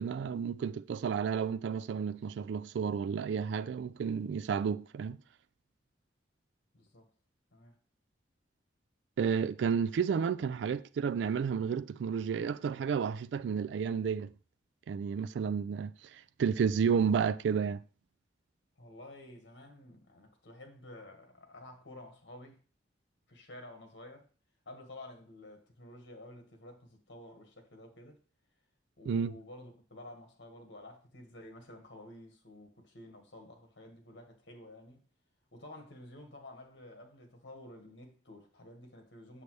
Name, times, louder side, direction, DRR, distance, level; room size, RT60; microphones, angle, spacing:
voice 1, 0.0-5.2 9.2-14.3 14.9-17.8 29.1-29.3, right 6 dB, 70° right, 0.3 m, -31 dB
voice 2, 6.7-7.1 7.5-7.7 18.8-22.6 23.3-24.3 24.6-28.2 29.0-35.0 35.5-39.4, left 1 dB, 65° left, 1.6 m, -51 dB
6.8 x 6.6 x 3.2 m
head